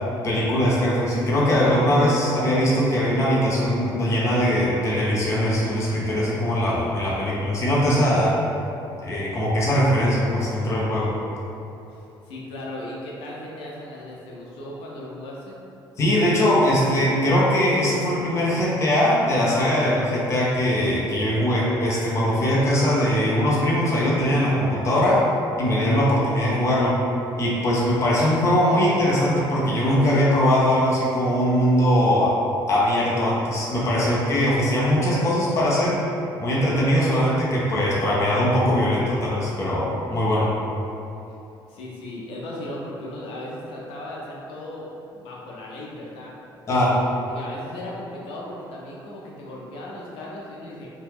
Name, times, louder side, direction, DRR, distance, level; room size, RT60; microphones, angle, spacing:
voice 1, 0.2-8.4 9.0-11.1 16.0-25.2 25.6-27.0 27.4-32.4 32.7-36.0 36.4-40.5 46.7-47.0, equal, 30° left, -6 dB, 0.6 m, -21 dB
voice 2, 11.9-15.5 41.7-46.3 46.7-50.9, left 1 dB, 85° left, -4 dB, 0.6 m, -37 dB
2.8 x 2.2 x 3.4 m, 2.9 s
cardioid pair, 150°, 9 cm